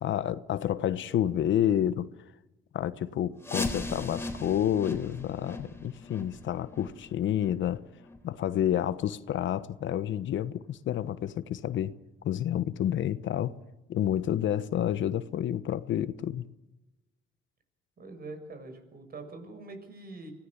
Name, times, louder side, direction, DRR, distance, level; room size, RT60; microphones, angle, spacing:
voice 1, 0.0-2.1 2.7-7.8 8.2-11.9 12.2-13.5 13.9-16.4, left 11 dB, 75° left, 1.2 m, -29 dB
sound 1, 3.4-9.0 9.3-9.5 10.0-10.1 10.7-10.8 11.3-11.4, left 2 dB, 10° left, 3.6 m, -39 dB
voice 2, 18.0-20.3, right 3 dB, 50° right, 6.6 m, -44 dB
25.0 x 18.0 x 7.3 m
cardioid pair, 90°, 20 cm